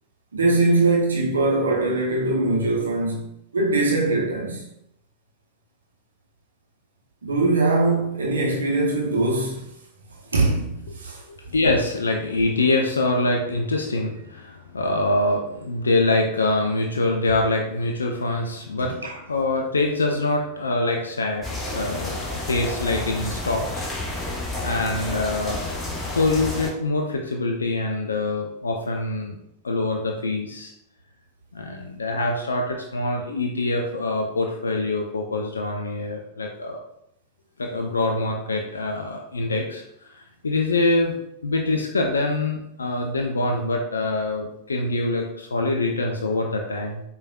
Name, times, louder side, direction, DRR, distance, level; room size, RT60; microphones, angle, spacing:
voice 1, 0.3-4.6 7.2-9.7 10.3-11.2 18.8-19.2, right 2 dB, 70° right, 0.6 m, -22 dB
voice 2, 11.3-23.9 24.1-24.3 24.6-25.6 26.1-29.4 29.6-30.7 31.5-36.8 37.6-41.1 41.4-47.0, left 2 dB, 75° left, 0.3 m, -25 dB
sound 1, 21.4-26.7, left 2 dB, 10° left, 0.8 m, -30 dB
4.7 x 2.3 x 2.2 m
figure-of-eight pair, 90°, 0 cm